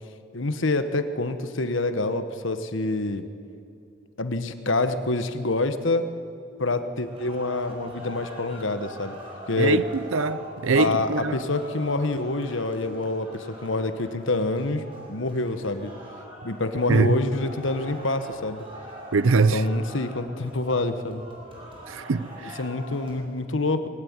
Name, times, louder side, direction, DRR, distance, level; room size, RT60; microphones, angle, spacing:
voice 1, 0.3-3.3 4.2-6.1 6.6-9.2 9.5-9.8 10.7-14.8 15.1-15.9 16.4-18.7 19.4-21.2 22.6-23.9, left 2 dB, 75° left, 1.2 m, -26 dB
sound 1, 6.9-23.2, equal, 25° right, 4.6 m, -43 dB
voice 2, 10.1-11.4 16.9-17.1 19.1-19.7 21.9-22.6, right 4 dB, 85° right, 0.6 m, -22 dB
21.0 x 15.5 x 9.5 m
head